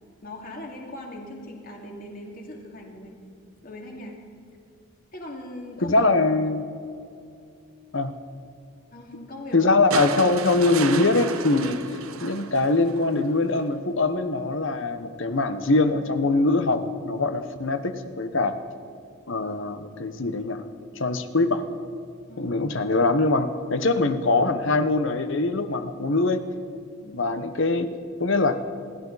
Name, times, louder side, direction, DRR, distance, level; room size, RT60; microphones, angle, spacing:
voice 1, 0.2-3.2 3.6-4.2 5.1-6.0 8.9-9.8 22.3-22.6 27.0-27.1, left 1 dB, 40° left, 0 dB, 2.5 m, -40 dB
voice 2, 5.8-6.6 7.9-8.1 9.5-11.8 12.2-18.6 19.3-20.6 20.9-21.6 22.4-26.4 27.1-27.9 28.2-28.6, left 3 dB, 60° left, 9 dB, 1.0 m, -23 dB
sound 1, 9.9-13.2 14.5-14.6, right 6 dB, 75° right, 0.9 m, -32 dB
28.0 x 12.0 x 4.1 m, 2.5 s
head